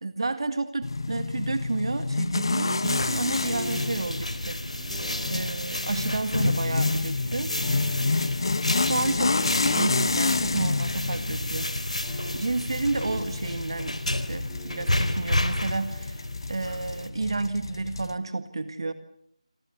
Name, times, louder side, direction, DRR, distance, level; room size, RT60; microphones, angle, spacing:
voice 1, 0.0-4.6 5.3-7.5 8.8-11.7 12.3-18.9, right 3 dB, 50° right, 10 dB, 1.9 m, -31 dB
sound 1, 0.8-18.1, left 3 dB, 45° left, 1.2 m, -29 dB
sound 2, 2.8-17.1, left 1 dB, 80° left, 3.8 m, -32 dB
sound 3, 3.2-13.8 14.3-16.6, left 1 dB, 5° left, 5.8 m, -44 dB
28.5 x 26.0 x 6.9 m, 0.70 s
figure-of-eight pair, 165°, 3 cm